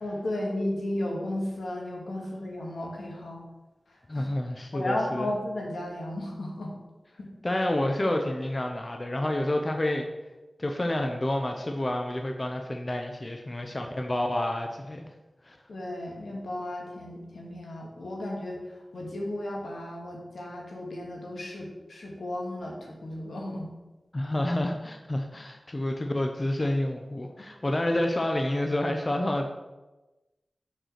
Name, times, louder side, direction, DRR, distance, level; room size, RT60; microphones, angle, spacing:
voice 1, 0.0-3.4 4.1-4.3 4.7-6.7 7.2-7.3 15.7-18.6 18.9-23.7, left 1 dB, 80° left, -1 dB, 2.0 m, -34 dB
voice 2, 4.1-5.3 7.4-10.1 10.6-15.1 15.4-15.6 24.1-29.5, left 1 dB, 30° left, 3 dB, 0.7 m, -29 dB
6.3 x 4.8 x 6.5 m, 1.1 s
wide cardioid pair, 75°, 0 cm